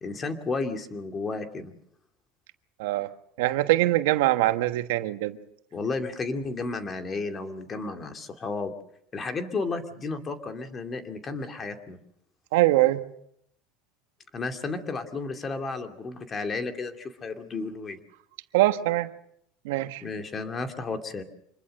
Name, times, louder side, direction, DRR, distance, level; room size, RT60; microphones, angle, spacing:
voice 1, 0.0-1.7 5.7-8.7 9.1-12.0 14.3-18.0 20.0-21.2, left 3 dB, 25° left, 2.4 m, -33 dB
voice 2, 3.4-5.4 12.5-13.0 18.5-19.1 19.6-20.0, right 16 dB, 85° right, 1.3 m, -23 dB
26.0 x 20.5 x 6.5 m
supercardioid pair, 140°, 0 cm